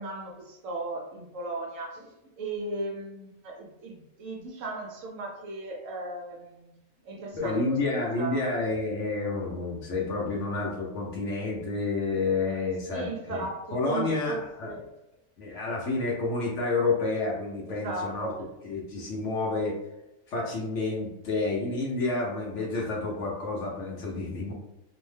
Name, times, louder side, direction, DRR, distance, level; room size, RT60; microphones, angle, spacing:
voice 1, 0.0-6.7 7.0-8.4 12.9-14.9 17.7-18.3, right 2 dB, 65° right, 0 dB, 0.9 m, -37 dB
voice 2, 7.3-14.7 15.4-18.3 18.6-19.8 20.3-24.5, left 3 dB, 65° left, -2 dB, 0.8 m, -29 dB
2.6 x 2.1 x 3.1 m, 0.92 s
omnidirectional pair, 1.5 m